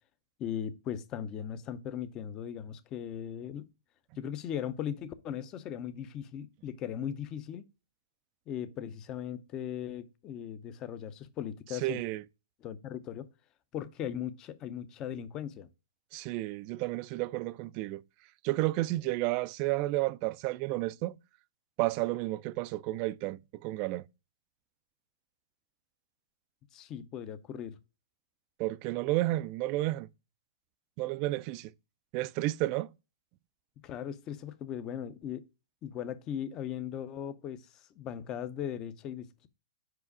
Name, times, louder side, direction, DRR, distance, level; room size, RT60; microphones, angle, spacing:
voice 1, 0.4-3.7 4.2-7.6 8.5-12.0 12.6-13.3 13.7-15.7 26.7-27.8 33.8-35.4 35.8-39.5, left 9 dB, 25° left, 0.6 m, -38 dB
voice 2, 11.8-12.2 16.1-18.0 18.4-21.2 21.8-24.0 28.6-30.1 31.0-31.7 32.1-32.9, right 18 dB, 35° right, 0.3 m, -31 dB
5.0 x 4.8 x 4.8 m
hypercardioid pair, 145°, 3 cm